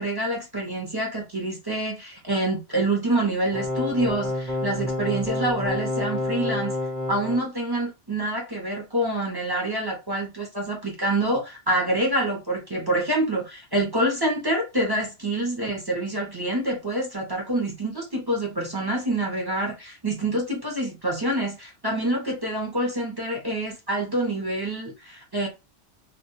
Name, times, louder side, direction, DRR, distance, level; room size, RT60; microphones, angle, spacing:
voice 1, 0.0-6.8 7.1-25.5, right 1 dB, 30° right, 0.4 m, -26 dB
sound 1, 3.5-7.4, left 1 dB, ahead, 0.7 m, -28 dB
2.2 x 2.1 x 2.9 m
omnidirectional pair, 1.2 m